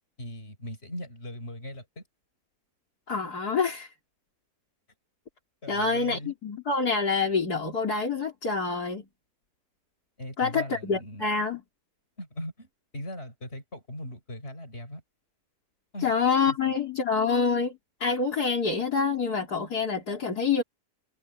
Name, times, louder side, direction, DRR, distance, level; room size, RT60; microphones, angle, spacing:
voice 1, 0.2-2.0 5.6-6.3 10.2-11.3 12.2-12.7 12.9-15.0 15.9-16.1 16.5-16.6, left 1 dB, 40° left, 6.9 m, -39 dB
voice 2, 3.1-3.9 5.7-9.1 10.4-11.6 16.0-20.6, left 5 dB, 70° left, 3.9 m, -27 dB
omnidirectional pair, 1.8 m